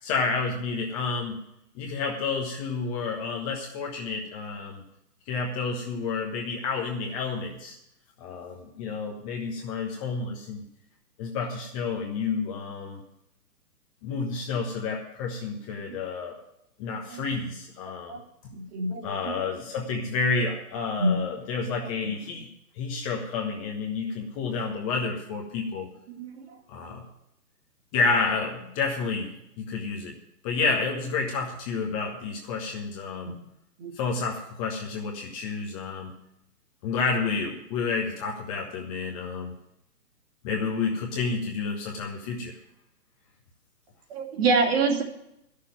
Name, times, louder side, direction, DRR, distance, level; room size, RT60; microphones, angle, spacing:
voice 1, 0.0-1.4 1.7-4.8 5.3-7.8 8.2-10.6 11.2-13.0 14.0-16.4 16.8-18.2 19.0-22.5 22.8-25.9 26.7-27.1 27.9-30.2 30.4-33.4 33.9-36.2 36.8-39.5 40.4-42.6, left 4 dB, 20° left, 1 dB, 1.3 m, -30 dB
voice 2, 16.9-17.3 18.1-18.2 18.5-19.4 21.0-21.3 26.2-26.6 33.2-33.3 33.8-33.9 44.1-45.0, right 3 dB, 40° right, 2 dB, 2.4 m, -27 dB
11.0 x 6.7 x 9.1 m, 0.82 s
hypercardioid pair, 145°, 48 cm